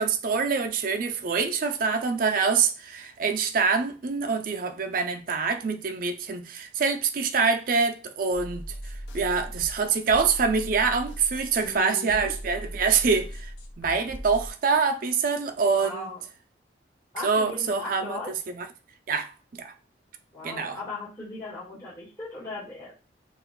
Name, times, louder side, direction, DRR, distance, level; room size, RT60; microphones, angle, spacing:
voice 1, 0.0-13.5 13.8-16.1 17.2-18.2 18.6-18.7 19.1-19.7 20.4-20.8, right 5 dB, 50° right, 0.4 m, -25 dB
sound 1, 8.3-14.5, equal, 70° left, 0.7 m, -39 dB
voice 2, 11.6-12.3 15.7-16.2 17.1-18.3 20.3-22.9, left 3 dB, 20° left, 1.7 m, -38 dB
5.7 x 2.4 x 2.2 m
head